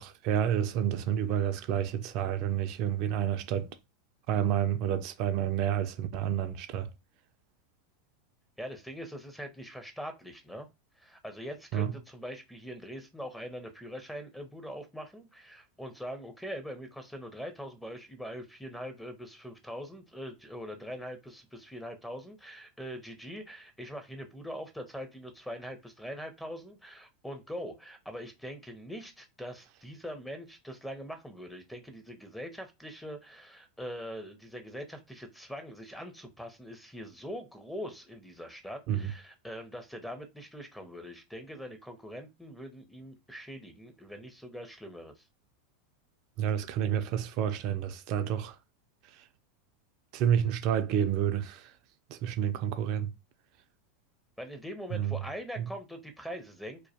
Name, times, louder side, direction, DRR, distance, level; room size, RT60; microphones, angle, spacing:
voice 1, 0.0-3.7 4.3-6.9 11.7-11.9 38.9-39.0 46.4-48.6 49.2-49.3 50.1-51.7 52.1-53.1 54.9-55.2 55.6-55.7, right 10 dB, 55° right, 0.3 m, -29 dB
voice 2, 8.6-10.7 11.0-45.2 54.4-56.8, equal, 5° left, 0.5 m, -42 dB
2.2 x 2.1 x 2.7 m
hypercardioid pair, 95°, 0 cm